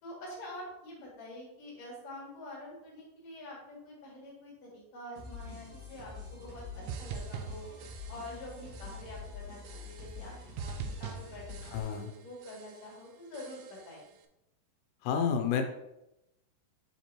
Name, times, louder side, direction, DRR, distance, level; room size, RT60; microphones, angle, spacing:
voice 1, 0.0-7.7 8.1-14.1, left 1 dB, 45° left, -4 dB, 3.1 m, -46 dB
sound 1, 5.2-11.8, left 4 dB, 50° right, 1.8 m, -46 dB
sound 2, 6.9-8.5 8.7-9.2 9.6-10.3 10.6-12.2 12.4-12.9 13.3-14.0, right 6 dB, 85° right, 2.2 m, -43 dB
voice 2, 11.7-12.1 15.0-15.6, left 7 dB, 90° left, 4 dB, 2.9 m, -29 dB
8.0 x 4.4 x 2.9 m, 0.87 s
omnidirectional pair, 4.9 m